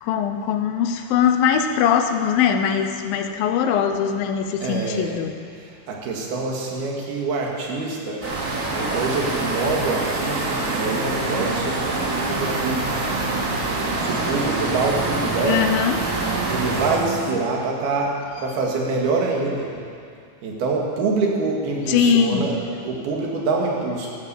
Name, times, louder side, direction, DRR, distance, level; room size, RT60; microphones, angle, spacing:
voice 1, 0.0-5.4 15.5-16.0 21.9-22.5, left 8 dB, 75° left, 7 dB, 2.6 m, -21 dB
voice 2, 4.6-5.2 5.6-8.2 8.7-12.0 12.3-12.9 14.0-15.6 16.5-19.7 20.4-22.5 22.8-24.2, right 3 dB, 85° right, -2 dB, 4.0 m, -25 dB
sound 1, 8.2-16.9, right 2 dB, 25° right, 2.8 m, -26 dB
sound 2, 8.4-17.3, right 4 dB, 55° right, 2.9 m, -33 dB
14.0 x 12.0 x 7.8 m, 2.4 s
omnidirectional pair, 4.3 m